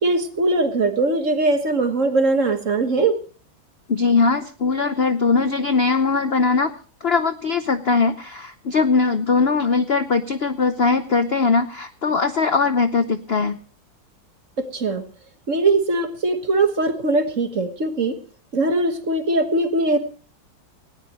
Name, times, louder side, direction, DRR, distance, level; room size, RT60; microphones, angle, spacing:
voice 1, 0.0-3.2 14.6-15.0 15.5-18.1 18.5-20.0, right 2 dB, 40° right, 8 dB, 1.7 m, -21 dB
voice 2, 3.9-6.7 7.0-13.6, left 4 dB, 60° left, 10 dB, 0.6 m, -20 dB
19.0 x 17.5 x 3.0 m, 0.38 s
omnidirectional pair, 2.2 m